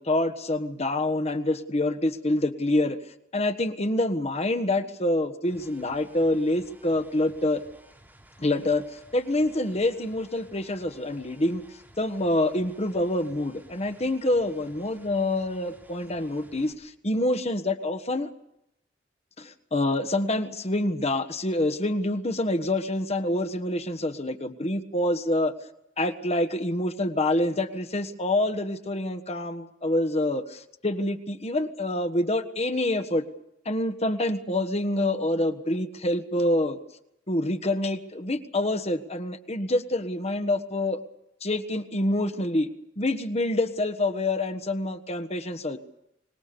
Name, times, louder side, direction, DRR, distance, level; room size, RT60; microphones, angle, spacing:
voice 1, 0.0-3.0 3.3-7.6 8.4-11.6 12.0-18.3 19.4-25.5 26.0-33.2 33.6-36.8 37.3-41.0 41.4-42.7 43.0-45.8, left 1 dB, 35° left, 9 dB, 1.4 m, -26 dB
sound 1, 5.4-16.7, right 1 dB, 10° right, 4.5 m, -55 dB
25.5 x 20.0 x 6.9 m, 0.80 s
head